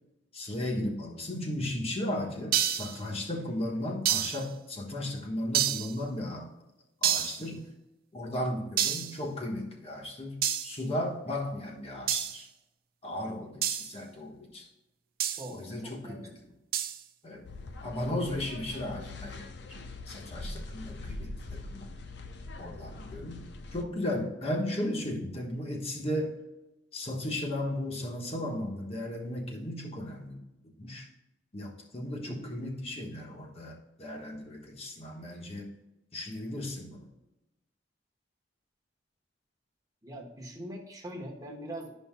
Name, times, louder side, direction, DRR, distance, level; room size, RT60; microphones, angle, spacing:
voice 1, 0.3-6.5 7.0-7.7 8.1-12.5 13.0-14.7 15.5-16.3 17.2-17.4 17.8-19.8 20.1-21.9 22.6-26.4 26.9-31.1 31.5-35.7 36.1-37.1, left 1 dB, 35° left, 0 dB, 1.3 m, -35 dB
sound 1, 2.5-3.0 4.0-4.5 5.5-5.9 7.0-7.4 8.8-9.2 10.4-10.8 12.1-12.4 13.6-13.9 15.2-15.5 16.7-17.0, right 10 dB, 55° right, 0.5 m, -28 dB
voice 2, 15.3-16.2 32.3-32.5 40.0-41.9, right 1 dB, 20° right, 0 dB, 1.1 m, -42 dB
sound 2, 17.4-23.8, left 2 dB, 65° left, 0.6 m, -42 dB
12.0 x 5.5 x 2.2 m, 0.97 s
head